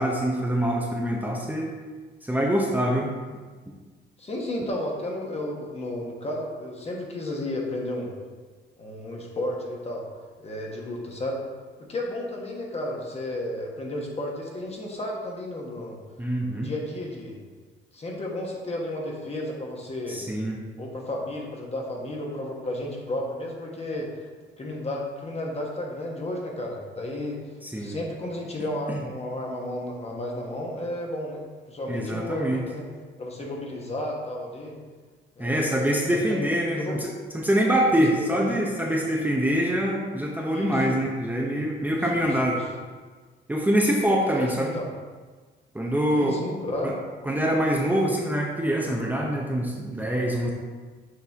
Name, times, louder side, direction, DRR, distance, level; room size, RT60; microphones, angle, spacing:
voice 1, 0.0-1.7 2.2-3.1 16.2-16.7 20.1-20.6 27.6-28.0 28.9-29.0 31.9-32.6 35.4-42.6 43.5-44.7 45.7-46.4 46.8-46.9 47.2-50.5, equal, 10° right, -2 dB, 0.8 m, -25 dB
voice 2, 4.2-8.1 8.8-10.0 10.4-11.4 11.8-16.0 16.5-17.4 17.9-20.3 20.8-24.3 24.6-27.4 27.8-32.9 33.2-34.8 35.4-36.4 36.7-37.0 37.9-38.6 40.5-41.0 41.9-42.6 44.3-44.9 46.1-46.9, left 1 dB, 30° left, -1 dB, 1.3 m, -33 dB
6.9 x 4.2 x 3.5 m, 1.4 s
cardioid pair, 90°, 20 cm